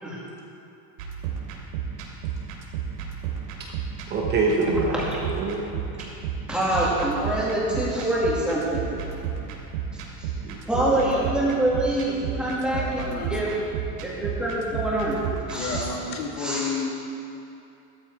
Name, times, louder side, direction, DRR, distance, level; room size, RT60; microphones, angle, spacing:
sound 1, 1.0-15.8, right 8 dB, 80° right, 3.0 m, -33 dB
voice 1, 4.1-5.6 10.4-10.9, right 3 dB, 20° right, -1 dB, 1.0 m, -26 dB
voice 2, 6.5-8.8 10.2-10.3 10.7-13.5 14.0-15.2 15.5-15.8 16.4-16.7, right 1 dB, ahead, -7 dB, 2.2 m, -25 dB
voice 3, 12.7-13.4 15.5-16.9, left 4 dB, 65° left, 0 dB, 2.4 m, -31 dB
15.0 x 13.0 x 4.7 m, 2.8 s
supercardioid pair, 175°, 47 cm